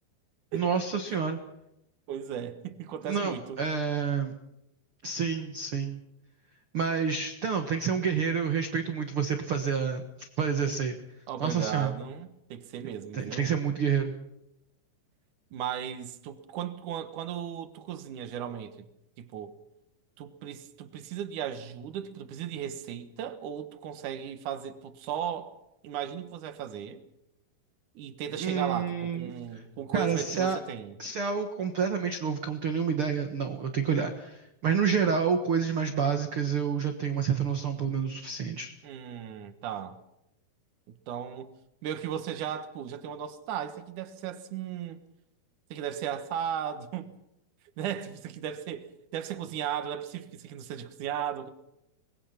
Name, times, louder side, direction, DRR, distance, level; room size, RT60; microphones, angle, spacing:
voice 1, 0.5-1.4 3.0-4.3 5.0-6.0 6.7-11.0 11.4-11.9 13.1-14.1 28.4-29.3 29.9-30.6 31.0-38.7, right 6 dB, 85° right, 1.2 m, -28 dB
voice 2, 2.1-3.6 11.3-13.5 15.5-18.9 19.2-19.5 20.2-25.5 25.8-27.0 28.0-30.9 38.8-40.0 40.9-41.5 41.8-45.0 45.7-47.1 47.8-51.5, right 9 dB, 60° right, 2.4 m, -36 dB
25.5 x 20.5 x 5.8 m
omnidirectional pair, 5.0 m